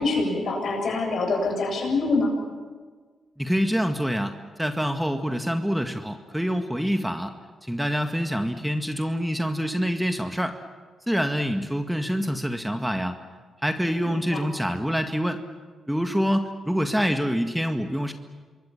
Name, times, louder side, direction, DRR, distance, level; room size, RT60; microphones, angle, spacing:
voice 1, 0.0-2.3 14.3-14.4, left 3 dB, 65° left, 3 dB, 7.7 m, -25 dB
voice 2, 3.4-7.3 7.6-10.6 11.1-13.2 13.6-15.4 15.9-18.1, equal, 5° right, 6 dB, 1.9 m, -26 dB
28.0 x 23.0 x 7.2 m, 1.5 s
hypercardioid pair, 45°, 0 cm